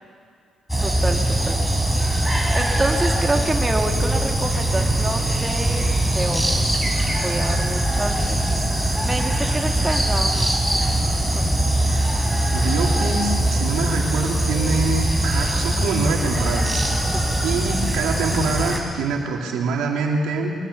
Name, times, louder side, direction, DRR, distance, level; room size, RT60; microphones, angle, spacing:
sound 1, 0.7-18.8, right 1 dB, ahead, 4.7 m, -21 dB
voice 1, 0.8-1.6 2.5-6.5 7.2-8.4 9.0-11.5 17.1-17.4, right 2 dB, 20° right, 2 dB, 2.3 m, -28 dB
voice 2, 12.5-16.8 17.4-20.5, right 4 dB, 90° right, 0 dB, 3.1 m, -25 dB
24.0 x 20.5 x 7.1 m, 2.2 s
cardioid pair, 90°, 0 cm